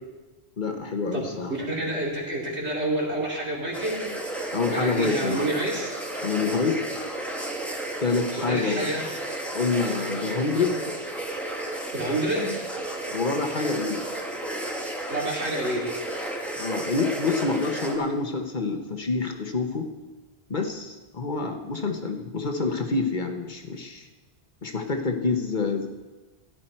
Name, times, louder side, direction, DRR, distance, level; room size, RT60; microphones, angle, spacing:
voice 1, 0.6-1.5 4.5-5.4 6.2-6.8 8.0-8.9 9.5-10.8 13.1-14.0 16.6-19.9 20.5-24.1 24.6-25.9, left 4 dB, 45° left, 5 dB, 1.1 m, -27 dB
voice 2, 1.1-4.1 4.7-6.1 8.4-9.1 11.9-12.6 15.1-15.9, right 1 dB, 90° right, -3 dB, 3.0 m, -28 dB
sound 1, 3.7-18.0, right 1 dB, ahead, 1.5 m, -33 dB
14.5 x 10.5 x 4.4 m, 1.2 s
omnidirectional pair, 1.1 m